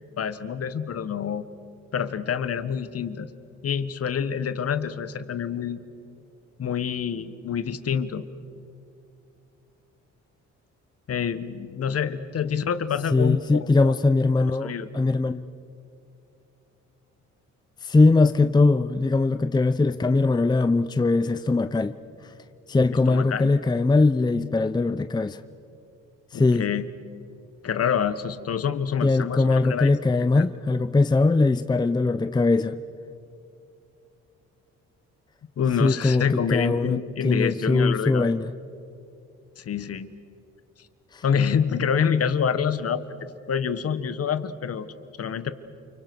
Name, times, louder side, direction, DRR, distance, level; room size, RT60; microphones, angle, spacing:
voice 1, 0.2-1.4 1.9-3.3 3.6-5.8 6.6-8.2 11.1-13.4 13.8-13.9 14.6-14.9 22.9-23.5 26.3-26.9 27.6-29.9 30.4-30.5 35.6-38.3 39.6-40.1 41.2-44.9 45.2-45.5, left 7 dB, 50° left, 13 dB, 1.4 m, -27 dB
voice 2, 13.1-15.5 17.8-21.9 22.7-25.4 26.3-26.7 29.0-32.8 35.8-37.0 37.2-38.5 41.1-41.2, left 3 dB, 15° left, 10 dB, 0.7 m, -21 dB
29.5 x 24.5 x 6.2 m, 2.6 s
cardioid pair, 90°, 30 cm